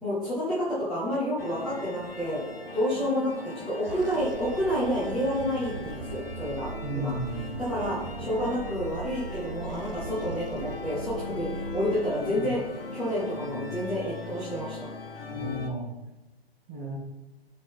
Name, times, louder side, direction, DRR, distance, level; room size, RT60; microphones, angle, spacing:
voice 1, 0.0-2.4 2.7-7.1 7.6-12.6 12.9-14.9, equal, ahead, -13 dB, 0.3 m, -29 dB
sound 1, 1.4-15.7, left 3 dB, 65° left, 1.1 m, -39 dB
sound 2, 2.0-2.7 3.7-13.1, right 5 dB, 65° right, 0.7 m, -41 dB
voice 2, 6.8-7.5 12.3-12.5 15.3-15.9 16.7-17.0, right 1 dB, 25° right, -3 dB, 2.4 m, -34 dB
11.0 x 4.3 x 3.7 m, 1.0 s
figure-of-eight pair, 130°, 31 cm